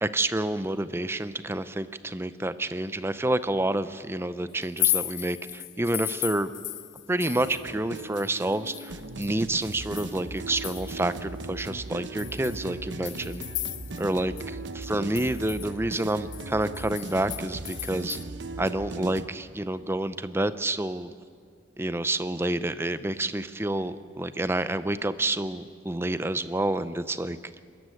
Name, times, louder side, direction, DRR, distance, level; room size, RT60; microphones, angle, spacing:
voice 1, 0.0-6.5 7.1-13.4 14.0-18.2 18.6-21.1 21.8-27.6, right 1 dB, 10° right, 13 dB, 0.6 m, -29 dB
sound 1, 4.6-7.7 8.0-11.2 11.6-11.7 12.2-14.1 14.4-14.5 14.8-18.2, left 14 dB, 80° left, 1.0 m, -34 dB
sound 2, 7.4-19.3, right 2 dB, 70° right, 1.1 m, -38 dB
24.5 x 14.0 x 9.7 m, 2.1 s
head